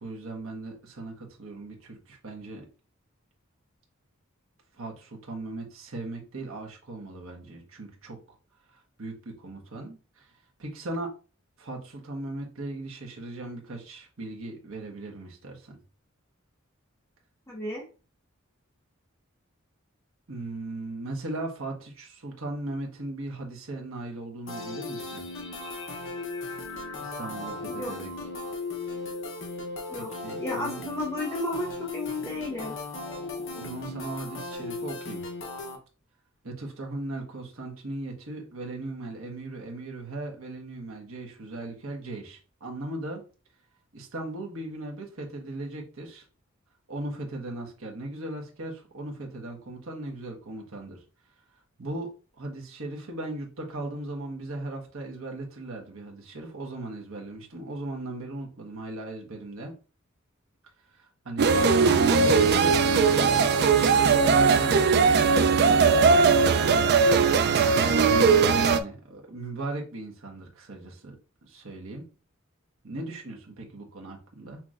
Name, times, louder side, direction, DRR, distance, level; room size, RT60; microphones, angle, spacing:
voice 1, 0.0-2.7 4.8-8.4 8.7-10.3 10.6-11.1 11.6-15.8 20.3-25.3 27.0-28.1 29.9-30.8 33.5-35.2 36.4-43.2 43.9-46.2 46.9-51.0 51.8-52.1 52.4-59.8 60.9-66.7 68.7-72.1 72.8-74.6, right 2 dB, 75° right, 1 dB, 1.3 m, -38 dB
voice 2, 17.5-17.8 27.7-27.9 29.9-30.1 30.4-32.7, left 1 dB, 15° left, -3 dB, 0.8 m, -33 dB
sound 1, 24.5-35.8, left 3 dB, 65° left, 0.9 m, -37 dB
sound 2, 61.4-68.8, right 5 dB, 50° right, 0.4 m, -20 dB
5.9 x 3.0 x 2.5 m, 0.34 s
head